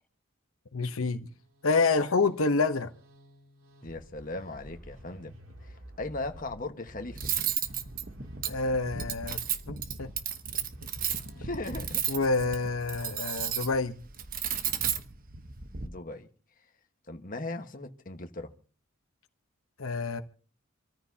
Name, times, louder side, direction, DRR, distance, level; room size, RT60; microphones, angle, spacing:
voice 1, 0.7-1.3 1.6-2.9 8.5-9.4 9.7-10.1 12.1-14.0 19.8-20.2, left 3 dB, 85° left, 1.0 m, -27 dB
sound 1, 1.2-13.1, right 1 dB, 75° right, 2.8 m, -52 dB
voice 2, 3.8-5.3 5.6-7.2 11.3-12.0 15.8-16.3 17.1-18.5, left 2 dB, 40° left, 1.4 m, -38 dB
Cutlery silverware, 7.1-15.9, right 9 dB, 45° right, 1.1 m, -34 dB
27.0 x 14.0 x 2.8 m
head